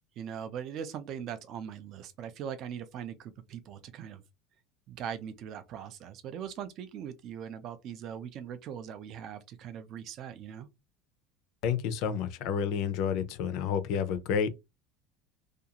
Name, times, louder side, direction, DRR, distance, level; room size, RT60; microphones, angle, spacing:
voice 1, 0.2-4.2 4.9-10.7, right 8 dB, 35° right, 0.4 m, -40 dB
voice 2, 11.6-14.5, left 7 dB, 50° left, 0.5 m, -30 dB
2.5 x 2.3 x 2.8 m
cardioid pair, 170°, 0 cm